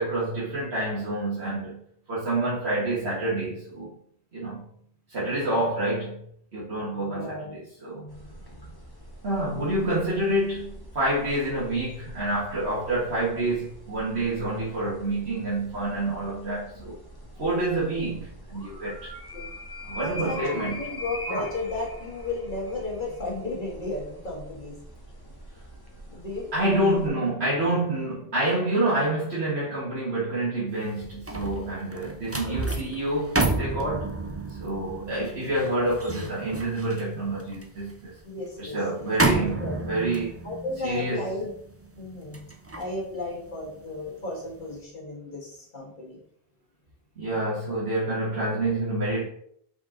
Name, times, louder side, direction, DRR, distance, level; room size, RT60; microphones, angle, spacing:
voice 1, 0.0-1.8 2.1-4.0 4.3-4.6 5.1-6.2 6.5-8.0 9.2-17.0 17.4-19.1 19.8-20.8 26.5-34.1 34.5-38.1 38.6-40.4 40.8-41.2 47.2-49.2, right 1 dB, 85° right, 2.0 m, -28 dB
voice 2, 5.2-5.6 7.1-7.5 7.9-8.6 19.3-19.5 19.9-24.8 26.1-27.2 32.5-32.6 32.8-33.0 38.3-39.1 39.4-39.7 40.4-41.5 41.9-42.4 42.8-46.2, left 2 dB, 50° left, 2.0 m, -34 dB
sound 1, 8.1-27.1, left 1 dB, 20° left, 1.1 m, -42 dB
sound 2, 30.8-44.1 44.5-44.8, right 2 dB, 20° right, 0.5 m, -31 dB
5.2 x 5.0 x 3.9 m
omnidirectional pair, 1.1 m